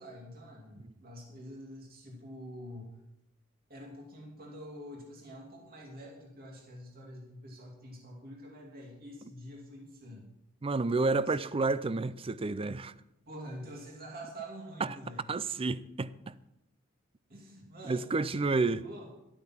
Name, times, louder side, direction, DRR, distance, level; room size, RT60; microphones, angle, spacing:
voice 1, 0.0-3.0 3.7-10.3 10.9-11.6 13.3-15.2 17.3-18.5 18.8-19.1, equal, 45° right, 2.4 m, -47 dB
voice 2, 10.6-12.9 14.8-14.9 15.3-16.1 17.8-18.8, right 3 dB, 25° right, 0.4 m, -30 dB
12.5 x 8.8 x 6.0 m
head